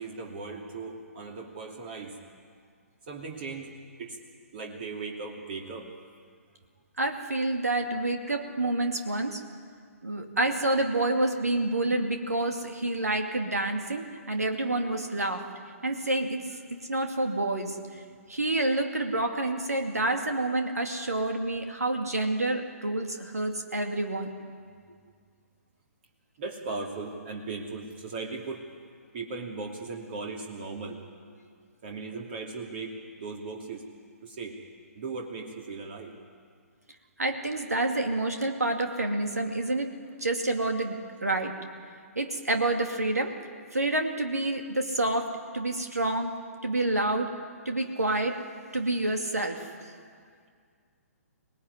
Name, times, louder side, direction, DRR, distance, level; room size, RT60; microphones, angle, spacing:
voice 1, 0.0-2.1 3.1-4.2 4.5-5.9 26.4-28.6 29.1-31.0 31.8-33.8 34.2-34.6 34.9-36.1, right 4 dB, 45° right, 1 dB, 2.7 m, -38 dB
voice 2, 7.0-9.4 10.0-15.5 15.8-18.0 18.3-24.3 37.2-39.9 40.2-41.6 42.2-43.3 43.7-46.3 46.6-47.3 47.7-48.4 48.7-49.9, right 2 dB, 80° right, 4 dB, 2.4 m, -28 dB
25.5 x 19.0 x 9.7 m, 2.1 s
figure-of-eight pair, 130°, 8 cm